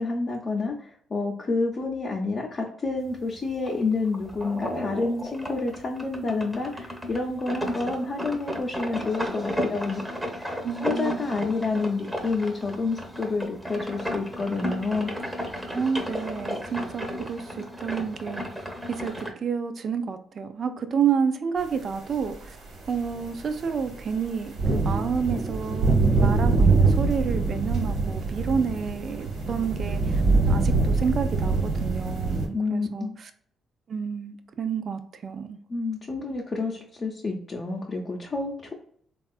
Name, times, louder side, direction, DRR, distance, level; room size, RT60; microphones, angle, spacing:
voice 1, 0.0-10.0 10.4-15.1 32.5-33.2 35.7-38.7, left 3 dB, 40° left, -2 dB, 0.6 m, -29 dB
sound 1, 3.0-19.3, equal, 5° right, 0.7 m, -34 dB
voice 2, 10.6-11.2 15.6-22.6 22.9-25.9 26.2-30.2 30.5-33.3 33.9-35.6, right 6 dB, 50° right, 9 dB, 0.4 m, -29 dB
sound 2, 22.1-22.2 22.7-32.5, right 3 dB, 75° right, 1.2 m, -24 dB
3.5 x 2.3 x 2.3 m, 0.62 s
cardioid pair, 90°, 0 cm